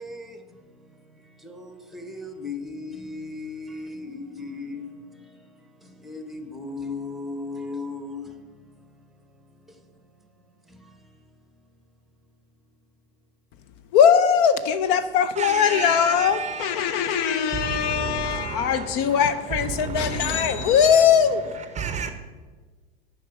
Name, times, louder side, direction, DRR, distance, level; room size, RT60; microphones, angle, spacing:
voice 1, 0.0-11.9 17.1-17.3, left 3 dB, ahead, 1.0 m, -38 dB
voice 2, 13.9-21.5, left 8 dB, 50° left, 0.6 m, -20 dB
voice 3, 15.4-19.3 19.6-21.0 21.8-22.1, right 6 dB, 20° right, 0.6 m, -33 dB
7.7 x 4.9 x 7.0 m
hypercardioid pair, 90°, 32 cm